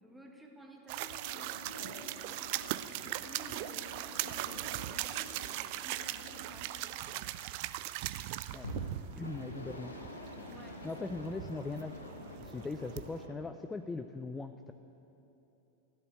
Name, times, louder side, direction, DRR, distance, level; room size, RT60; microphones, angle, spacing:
voice 1, 0.0-7.3 10.5-10.9 12.6-12.7, right 1 dB, 5° right, 1 dB, 1.6 m, -55 dB
sound 1, 0.9-13.2, right 15 dB, 45° right, 0.4 m, -40 dB
sound 2, 1.2-7.5 8.6-13.5, left 1 dB, 80° left, 1.2 m, -48 dB
voice 2, 9.2-9.9 10.8-11.9 12.4-14.7, left 3 dB, 10° left, 8 dB, 0.4 m, -40 dB
14.5 x 8.2 x 8.0 m, 3.0 s
figure-of-eight pair, 90°, 0 cm